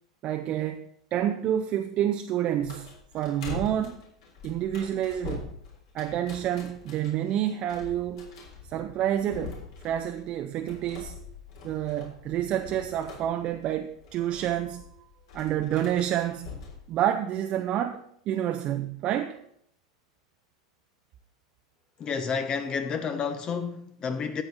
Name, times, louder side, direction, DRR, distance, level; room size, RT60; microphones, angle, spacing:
voice 1, 0.2-2.9 3.1-4.0 4.4-5.5 5.9-8.3 8.7-9.6 9.8-11.2 11.6-14.8 15.3-16.5 16.9-19.4, right 11 dB, 40° right, 0.7 m, -28 dB
sound 1, 2.6-16.9, left 5 dB, 60° left, 3.6 m, -44 dB
voice 2, 22.0-24.4, left 6 dB, 30° left, 0.8 m, -30 dB
13.0 x 8.0 x 4.1 m
figure-of-eight pair, 85°, 3 cm